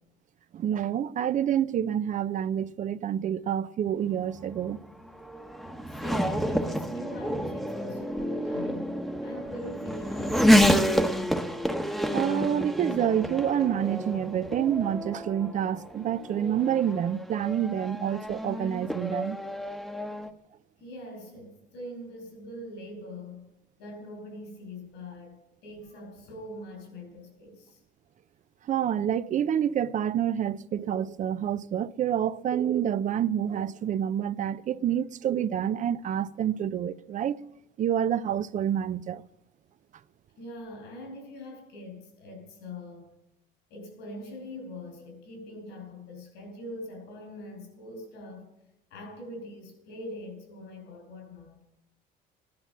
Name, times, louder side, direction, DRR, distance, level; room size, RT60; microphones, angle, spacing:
voice 1, 0.5-4.8 12.1-19.4 28.7-37.4 37.8-39.2, right 9 dB, 50° right, 0.6 m, -28 dB
Race car auto racing / Accelerating revving vroom, 4.0-20.3, equal, ahead, 1.0 m, -29 dB
voice 2, 5.9-8.9 9.2-10.9 20.8-23.5 23.8-25.4 25.6-27.8 40.4-43.1 43.7-48.5 48.9-51.6, left 1 dB, 90° left, 6.1 m, -42 dB
15.5 x 10.5 x 7.3 m
cardioid pair, 110°, 17 cm